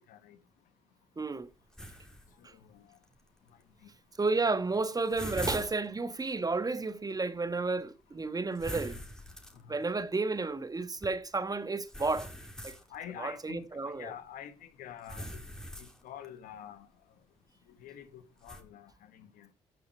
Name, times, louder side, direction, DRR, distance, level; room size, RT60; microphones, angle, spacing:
voice 1, 1.2-1.5 4.2-9.0 9.7-12.3 12.6-12.8 13.2-14.1, right 3 dB, 25° right, 1.3 m, -32 dB
sound 1, 1.7-2.3 2.9-3.0 4.2-4.3 4.6-5.9 8.5-9.8 11.0-11.1 11.9-13.0 15.0-16.3 18.4-18.6, equal, 5° left, 2.8 m, -41 dB
voice 2, 2.5-3.0 3.8-3.9 12.9-15.4 15.8-16.9 17.8-19.5, left 9 dB, 70° left, 1.5 m, -47 dB
16.0 x 6.6 x 4.5 m
hypercardioid pair, 55°, 15 cm